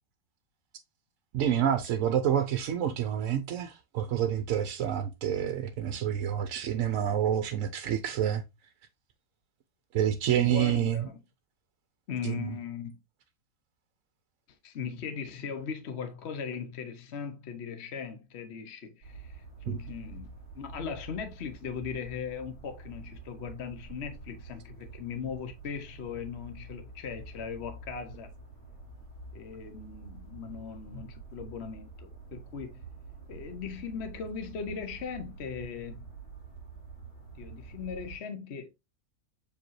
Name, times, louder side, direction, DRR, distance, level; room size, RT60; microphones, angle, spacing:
voice 1, 1.3-8.4 9.9-11.0 12.2-12.4 19.7-19.8, right 10 dB, 65° right, 0.9 m, -28 dB
voice 2, 10.4-11.2 12.1-13.0 14.5-28.3 29.3-32.7 33.3-36.1 37.3-38.7, left 6 dB, 50° left, 0.9 m, -39 dB
sound 1, 19.0-38.2, right 4 dB, 90° left, 5.1 m, -47 dB
7.0 x 5.0 x 3.1 m
omnidirectional pair, 1.7 m